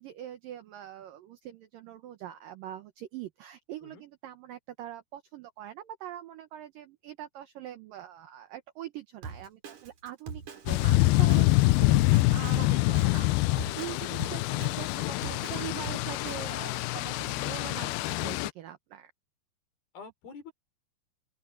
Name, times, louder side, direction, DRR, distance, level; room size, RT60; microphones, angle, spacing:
voice 1, 0.0-11.7 12.0-19.1, right 12 dB, 70° right, 2.3 m, -43 dB
Drum kit, 9.2-16.5, right 5 dB, 45° right, 3.6 m, -42 dB
sound 1, 10.7-18.5, left 20 dB, 85° left, 2.3 m, -26 dB
voice 2, 19.9-20.5, left 6 dB, 60° left, 5.2 m, -46 dB
open air
omnidirectional pair, 4.9 m